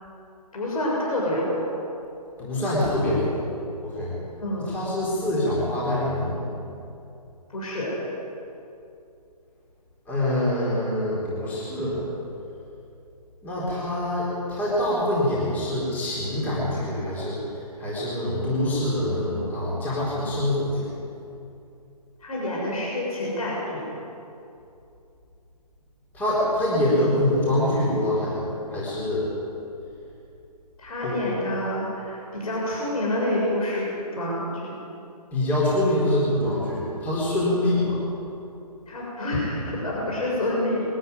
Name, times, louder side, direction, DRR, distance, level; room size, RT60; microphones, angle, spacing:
voice 1, 0.5-1.7 4.4-4.7 7.5-8.0 22.2-23.9 30.8-34.8 38.9-40.8, left 1 dB, 60° left, -4 dB, 7.0 m, -27 dB
voice 2, 2.4-3.4 3.8-4.1 4.7-6.6 10.1-12.0 13.4-17.4 17.8-20.9 26.1-28.4 28.7-29.3 31.0-31.2 35.3-38.0, left 1 dB, 10° left, -8 dB, 4.2 m, -25 dB
22.0 x 13.5 x 9.5 m, 2.8 s
hypercardioid pair, 160°, 21 cm